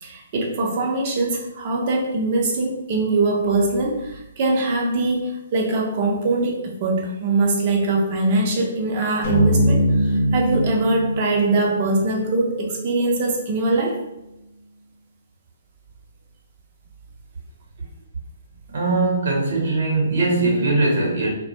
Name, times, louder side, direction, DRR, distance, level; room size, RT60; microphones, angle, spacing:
voice 1, 0.0-14.0, right 2 dB, 40° right, 0 dB, 0.7 m, -22 dB
sound 1, 9.2-13.6, equal, 60° left, 0.8 m, -22 dB
voice 2, 18.7-21.3, right 2 dB, 60° right, -1 dB, 1.0 m, -20 dB
2.3 x 2.2 x 2.9 m, 0.91 s
hypercardioid pair, 135°, 0 cm